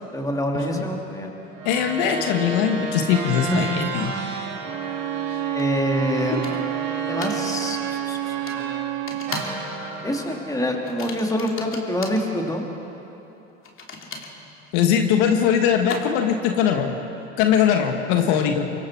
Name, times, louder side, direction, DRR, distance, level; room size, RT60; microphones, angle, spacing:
voice 1, 0.1-1.3 3.5-3.6 5.5-6.7 7.1-7.8 8.1-8.2 10.0-12.6, equal, 10° left, 0 dB, 3.2 m, -25 dB
sound 1, 1.5-8.9 9.3-11.7, right 3 dB, 80° right, 4.3 m, -33 dB
voice 2, 1.6-4.2 14.7-17.0 17.4-18.7, left 8 dB, 65° left, 5 dB, 1.6 m, -21 dB
Bowed string instrument, 4.6-9.5, right 13 dB, 50° right, 0.7 m, -29 dB
sound 2, 5.6-5.7 6.4-6.8 7.2-7.4 8.5-8.6 9.1-9.6 9.9-10.2 10.8-12.2 13.6-16.4, left 4 dB, 35° left, 3.0 m, -37 dB
25.0 x 22.5 x 4.7 m, 2.9 s
hypercardioid pair, 85°, 38 cm